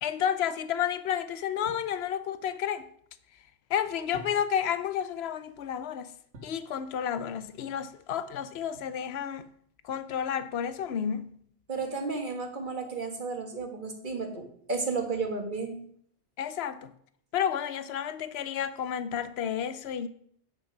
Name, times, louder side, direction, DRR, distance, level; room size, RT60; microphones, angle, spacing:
voice 1, 0.0-2.8 3.7-6.1 6.4-9.5 9.8-11.3 16.4-16.9 17.3-20.1, left 9 dB, 70° left, 0.9 m, -31 dB
sound 1, 1.7-2.0 4.1-4.7 6.3-6.7 8.7-9.3, right 1 dB, 80° right, 2.0 m, -48 dB
voice 2, 11.7-15.8, right 4 dB, 45° right, 1.7 m, -33 dB
9.4 x 6.2 x 5.9 m
omnidirectional pair, 1.2 m